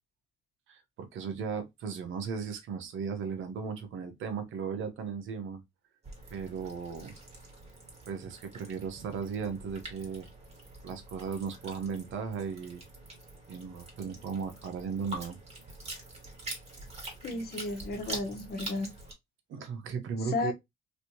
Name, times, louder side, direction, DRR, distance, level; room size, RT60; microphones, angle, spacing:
voice 1, 0.7-5.6 6.3-7.1 8.1-10.3 10.8-12.8 13.5-15.4 19.5-20.5, right 6 dB, 80° right, 1.0 m, -36 dB
sound 1, 6.0-19.1, right 2 dB, 30° right, 1.8 m, -45 dB
voice 2, 17.2-18.9 20.2-20.5, left 3 dB, 55° left, 1.1 m, -33 dB
3.3 x 2.6 x 2.8 m
cardioid pair, 90°, 20 cm